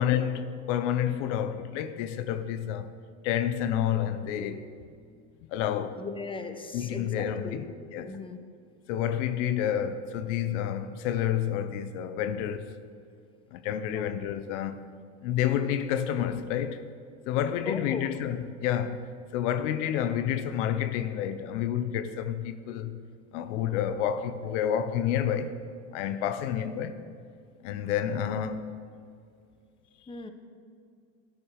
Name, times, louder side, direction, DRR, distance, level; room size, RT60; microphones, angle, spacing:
voice 1, 0.0-2.9 3.2-4.7 5.5-6.0 6.7-7.7 7.9-8.1 8.9-12.7 13.5-14.8 15.2-16.9 17.3-19.1 19.3-23.0 23.3-25.5 25.9-27.1 27.6-28.7, left 9 dB, 80° left, 0.9 m, -29 dB
voice 2, 5.9-8.4 13.9-14.1 17.6-18.2 30.1-30.3, left 4 dB, 15° left, 1.3 m, -38 dB
13.5 x 12.5 x 6.5 m
supercardioid pair, 90°, 35 cm